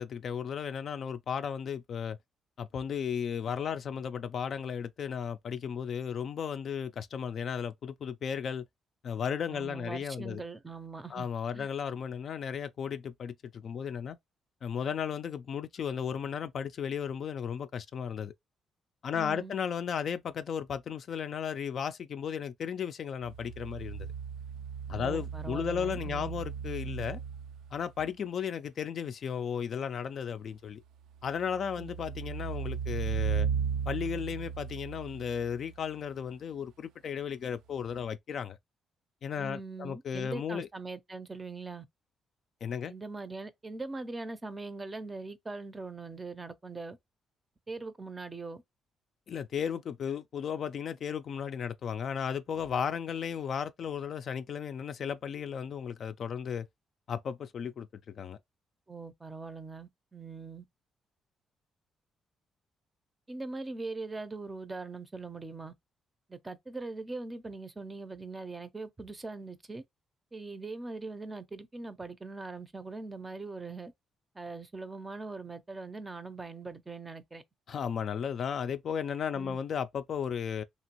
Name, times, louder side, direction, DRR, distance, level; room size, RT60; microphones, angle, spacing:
voice 1, 0.0-2.2 2.6-8.6 9.0-10.4 11.1-14.2 14.6-18.3 19.0-24.1 24.9-27.2 27.7-30.8 31.2-33.5 33.9-38.6 39.2-40.7 42.6-42.9 49.3-56.7 57.1-58.4 77.7-80.6, left 7 dB, 60° left, 0.3 m, -35 dB
voice 2, 9.5-11.3 11.5-11.7 19.1-19.6 24.9-26.4 31.8-31.9 39.4-41.9 42.9-47.0 47.7-48.6 58.9-60.6 63.3-65.7 66.3-69.8 70.3-73.9 74.3-77.4 79.3-79.6, right 3 dB, 20° right, 0.5 m, -41 dB
sound 1, 23.2-27.9 31.2-35.8 37.9-38.0, right 7 dB, 85° right, 0.3 m, -36 dB
2.9 x 2.5 x 2.9 m
cardioid pair, 90°, 0 cm